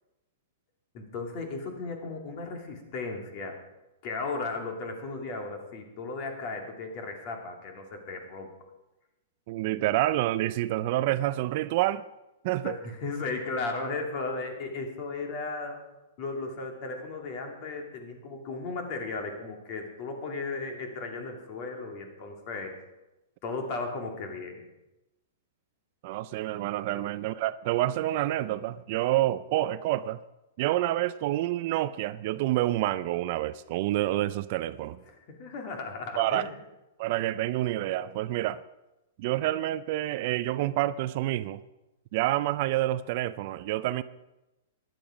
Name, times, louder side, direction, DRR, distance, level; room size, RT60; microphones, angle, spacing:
voice 1, 0.9-3.6 4.0-8.5 12.6-15.8 16.2-22.7 23.4-24.6 26.9-27.1 35.1-36.5, left 3 dB, 35° left, 2.6 m, -35 dB
voice 2, 9.5-12.0 12.4-12.8 26.0-30.2 30.6-35.0 36.2-36.5 37.0-38.6 39.2-41.6 42.1-44.0, right 15 dB, 40° right, 0.4 m, -28 dB
15.0 x 10.5 x 5.1 m
hypercardioid pair, 160°, 0 cm